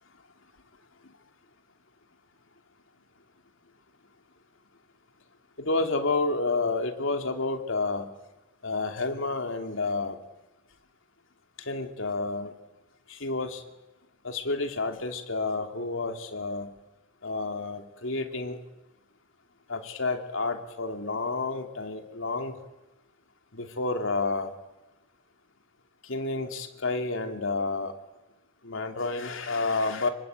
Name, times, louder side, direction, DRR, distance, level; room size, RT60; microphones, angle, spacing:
voice 1, 5.6-8.1 8.6-10.2 11.7-12.5 13.1-13.6 14.2-16.7 17.2-18.6 19.7-22.5 23.5-24.5 26.1-27.9 28.6-30.1, left 3 dB, 75° left, 2.8 m, -30 dB
27.0 x 24.0 x 9.1 m
head